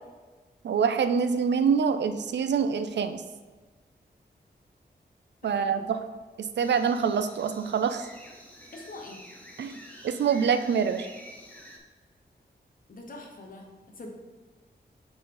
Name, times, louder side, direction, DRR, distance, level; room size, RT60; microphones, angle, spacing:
voice 1, 0.6-3.2 5.4-6.0 6.6-8.1 9.6-9.8 10.0-11.1, right 6 dB, 85° right, 9 dB, 0.5 m, -25 dB
voice 2, 5.4-5.8 8.7-9.2 12.9-14.1, left 2 dB, 55° left, 1 dB, 1.1 m, -44 dB
sound 1, 6.6-11.8, equal, 10° left, 0.9 m, -49 dB
7.8 x 4.0 x 3.9 m, 1.3 s
wide cardioid pair, 175°, 18 cm